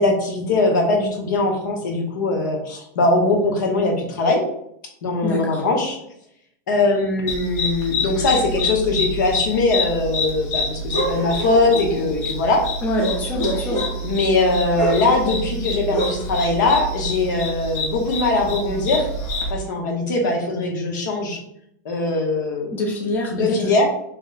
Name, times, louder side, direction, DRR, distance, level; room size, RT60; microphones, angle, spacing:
voice 1, 0.0-4.4 5.0-6.0 6.7-12.7 14.0-19.1 19.5-21.4 21.8-22.7 23.3-23.9, left 2 dB, 80° left, 1 dB, 0.9 m, -21 dB
voice 2, 5.2-5.6 12.8-13.8 22.7-23.6, equal, 15° left, -1 dB, 0.5 m, -25 dB
sound 1, 7.3-19.5, left 1 dB, 45° left, 1.0 m, -26 dB
2.9 x 2.1 x 3.9 m, 0.74 s
supercardioid pair, 155°, 10 cm